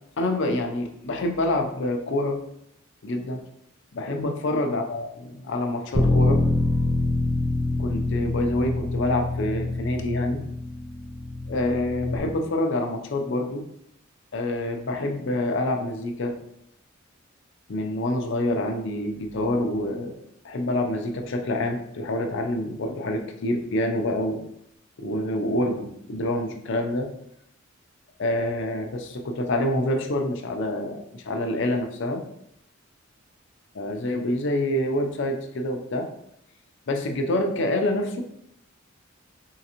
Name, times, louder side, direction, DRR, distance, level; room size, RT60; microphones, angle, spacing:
voice 1, 0.2-2.4 3.0-3.4 3.9-6.4 7.8-10.4 11.5-13.6 14.3-16.3 17.7-20.1 20.4-24.4 25.0-27.1 28.2-32.2 33.7-36.1 36.9-38.2, left 1 dB, 65° left, 4 dB, 0.5 m, -27 dB
Bass guitar, 5.9-12.2, left 2 dB, 10° left, 0.3 m, -25 dB
3.7 x 3.2 x 2.9 m, 0.75 s
head